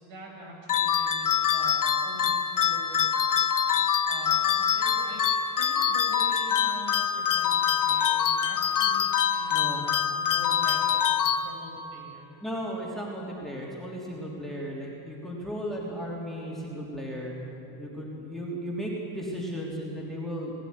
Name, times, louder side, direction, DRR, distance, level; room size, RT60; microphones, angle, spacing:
voice 1, 0.0-3.1 4.1-5.2 5.6-9.8 10.1-11.1 11.4-12.3, right 1 dB, 60° right, -1 dB, 6.9 m, -45 dB
sound 1, 0.7-11.9, left 8 dB, 40° left, 1.0 m, -25 dB
voice 2, 9.5-9.8 12.4-17.3 17.8-20.5, equal, ahead, -4 dB, 3.3 m, -35 dB
21.5 x 15.5 x 9.9 m, 2.9 s
cardioid pair, 160°, 50 cm